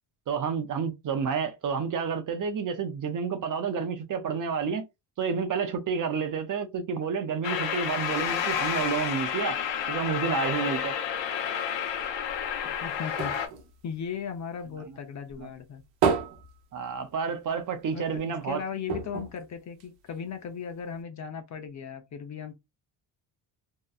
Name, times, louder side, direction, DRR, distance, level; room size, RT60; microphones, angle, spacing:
voice 1, 0.3-4.8 5.2-9.6 9.9-11.0 15.4-15.5 16.7-18.6, right 6 dB, 45° right, 0.5 m, -30 dB
sound 1, 7.4-13.5, left 8 dB, 75° left, 0.8 m, -30 dB
sound 2, 12.3-14.9 15.3-17.5 17.9-18.0 18.3-18.4 18.9-20.4 21.0-21.1, right 6 dB, 85° right, 0.9 m, -32 dB
voice 2, 12.6-13.3 13.8-15.8 17.9-22.5, left 7 dB, 40° left, 0.6 m, -37 dB
2.7 x 2.1 x 2.3 m
cardioid pair, 105°, 44 cm